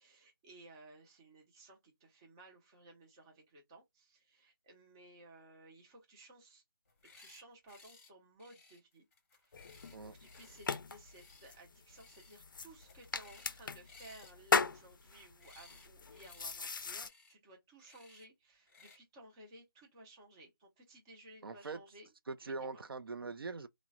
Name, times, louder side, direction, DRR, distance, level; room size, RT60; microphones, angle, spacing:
voice 1, 0.0-6.6 7.2-9.0 9.3-22.1 22.4-22.8, right 2 dB, 10° right, 0.4 m, -58 dB
sound 1, 6.9-7.4 7.7-8.1 8.4-10.7 11.1-11.6 11.9-12.4 12.6-13.6 13.9-15.9 16.1-16.6 16.9-17.3 17.8-18.3 18.7-19.0, left 4 dB, 35° left, 0.8 m, -61 dB
sound 2, 9.5-17.1, left 5 dB, 65° left, 0.4 m, -39 dB
voice 2, 21.4-21.8 22.3-23.7, right 4 dB, 85° right, 0.4 m, -42 dB
2.9 x 2.0 x 2.3 m
figure-of-eight pair, 160°, 12 cm